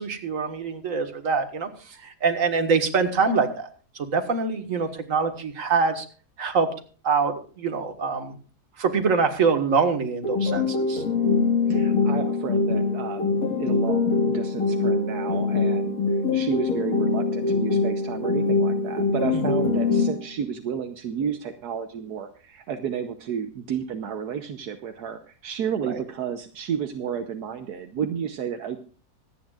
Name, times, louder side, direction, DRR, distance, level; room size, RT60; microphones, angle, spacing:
voice 1, 0.0-3.7 3.9-6.1 6.4-6.7 7.0-8.4 8.8-11.0 19.3-19.6, right 5 dB, 55° right, 6 dB, 2.0 m, -24 dB
sound 1, 10.2-20.2, left 4 dB, 60° left, 2.5 m, -23 dB
voice 2, 11.7-16.0 16.3-28.8, right 7 dB, 80° right, 6 dB, 1.4 m, -32 dB
25.0 x 9.2 x 2.4 m, 0.39 s
omnidirectional pair, 1.7 m